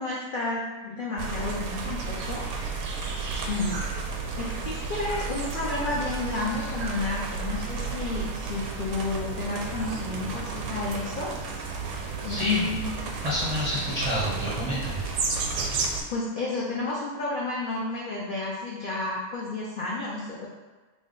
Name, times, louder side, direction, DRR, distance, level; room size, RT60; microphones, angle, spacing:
voice 1, 0.0-2.4 3.5-3.8 4.4-11.3 12.2-12.8 16.1-20.5, left 3 dB, 70° left, -5 dB, 0.5 m, -31 dB
sound 1, 1.2-16.0, right 4 dB, 75° right, 1.0 m, -32 dB
voice 2, 12.3-12.7 13.2-15.0, equal, 45° right, -9 dB, 0.5 m, -28 dB
3.3 x 2.1 x 3.7 m, 1.2 s
omnidirectional pair, 1.5 m